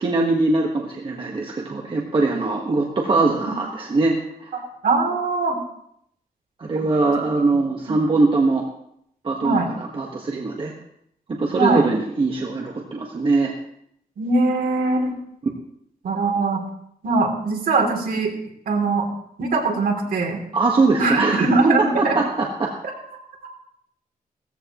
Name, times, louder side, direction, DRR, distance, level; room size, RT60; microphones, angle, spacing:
voice 1, 0.0-4.5 6.6-8.7 9.2-10.7 11.3-13.5 20.5-21.5 21.8-22.7, right 3 dB, 35° right, 0 dB, 1.4 m, -22 dB
voice 2, 4.8-5.6 7.9-8.0 9.4-9.7 11.5-11.9 14.2-15.1 16.0-16.6 17.0-18.3 18.7-19.1 19.4-20.4 21.0-22.2, right 3 dB, 75° right, 2 dB, 2.9 m, -21 dB
17.5 x 14.5 x 3.0 m, 0.71 s
wide cardioid pair, 160°, 15 cm